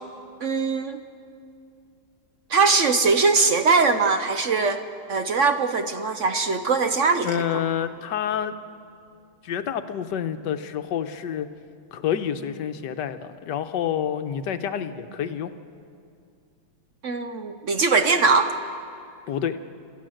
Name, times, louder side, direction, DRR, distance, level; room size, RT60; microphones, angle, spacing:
voice 1, 0.4-1.0 2.5-4.8 5.1-7.4 17.0-18.5, right 4 dB, 55° right, 8 dB, 0.9 m, -21 dB
voice 2, 7.2-8.5 9.4-11.5 11.9-15.5 19.3-19.6, left 9 dB, 75° left, 9 dB, 1.5 m, -28 dB
27.0 x 14.0 x 7.8 m, 2.4 s
omnidirectional pair, 2.0 m